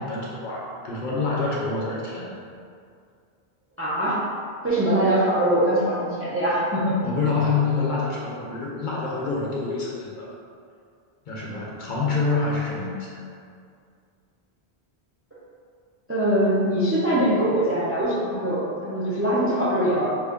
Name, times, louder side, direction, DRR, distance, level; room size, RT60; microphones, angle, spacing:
voice 1, 0.0-2.3 7.0-10.3 11.3-13.1, left 4 dB, 55° left, -5 dB, 0.7 m, -26 dB
voice 2, 3.8-4.2 4.6-7.0 16.1-20.1, right 1 dB, 20° right, -8 dB, 0.4 m, -22 dB
3.2 x 2.5 x 3.5 m, 2.3 s
omnidirectional pair, 1.0 m